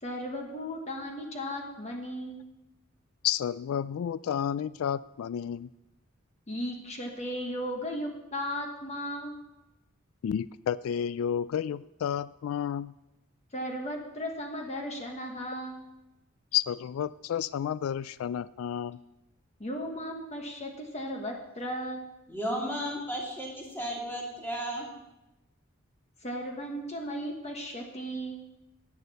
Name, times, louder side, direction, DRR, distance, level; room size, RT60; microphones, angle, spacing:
voice 1, 0.0-2.4 6.5-9.4 13.5-15.8 19.6-22.0 26.2-28.4, equal, 35° left, 2 dB, 1.3 m, -36 dB
voice 2, 3.2-5.7 10.2-12.9 16.5-19.0, left 9 dB, 90° left, 18 dB, 0.3 m, -31 dB
voice 3, 22.3-24.9, equal, 10° left, -2 dB, 2.6 m, -34 dB
10.5 x 8.9 x 6.8 m, 0.96 s
head